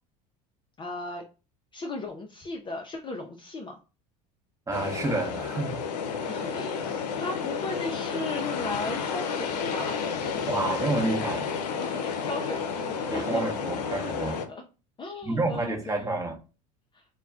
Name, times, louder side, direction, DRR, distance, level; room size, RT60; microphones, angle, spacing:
voice 1, 0.8-1.2 1.7-3.8 6.2-10.0 11.8-13.4 14.5-14.6 15.0-16.1 16.9-17.0, left 2 dB, 25° left, 0.4 m, -36 dB
sound 1, 4.7-14.5, left 6 dB, 85° left, 0.5 m, -31 dB
voice 2, 4.7-5.8 6.1-6.4 10.5-11.5 13.1-14.4 15.2-16.4, right 2 dB, 15° right, 0.8 m, -29 dB
2.2 x 2.1 x 3.5 m
hypercardioid pair, 85°, 21 cm